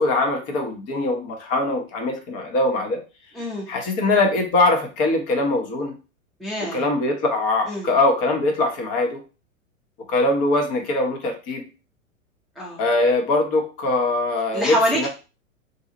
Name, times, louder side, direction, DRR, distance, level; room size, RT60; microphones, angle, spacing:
voice 1, 0.0-3.0 3.7-5.9 6.6-9.2 10.1-11.7 12.8-15.1, left 2 dB, 35° left, 3 dB, 0.9 m, -22 dB
voice 2, 3.3-3.7 6.4-6.8 7.7-7.9 12.6-12.8 14.5-15.1, equal, ahead, -3 dB, 0.7 m, -25 dB
2.8 x 2.4 x 3.9 m, 0.32 s
hypercardioid pair, 105°, 41 cm